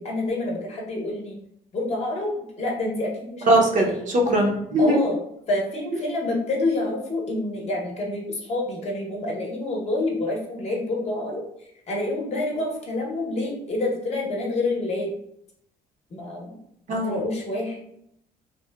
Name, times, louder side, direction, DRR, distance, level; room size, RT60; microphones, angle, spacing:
voice 1, 0.0-1.4 1.7-4.0 4.8-5.2 5.5-11.4 11.9-15.1 16.1-16.5 16.9-17.8, left 2 dB, 40° left, -1 dB, 0.8 m, -27 dB
voice 2, 3.5-3.9 4.3-5.0 16.9-17.2, right 1 dB, 45° right, 0 dB, 0.6 m, -20 dB
2.9 x 2.1 x 2.2 m, 0.74 s
cardioid pair, 110°, 17 cm